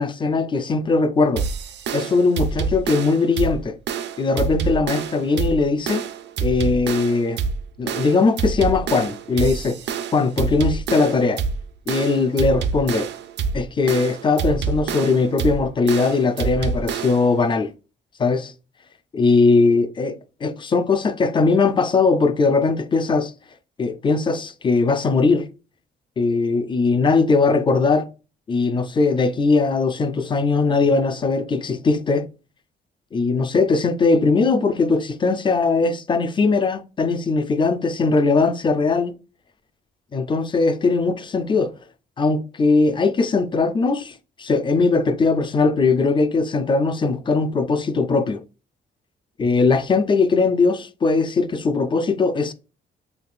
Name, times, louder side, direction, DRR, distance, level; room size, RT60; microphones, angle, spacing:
voice 1, 0.0-1.4 1.9-3.8 4.2-6.0 6.4-7.4 7.8-9.8 10.1-11.4 11.9-13.1 13.5-17.7 18.2-18.5 19.1-23.3 23.8-25.5 26.2-28.1 28.5-32.3 33.1-39.1 40.1-41.7 42.2-48.4 49.4-52.5, left 4 dB, 25° left, 0.4 m, -20 dB
sound 1, 1.4-17.3, right 5 dB, 60° right, 0.5 m, -27 dB
3.3 x 3.1 x 2.4 m
cardioid pair, 90°, 20 cm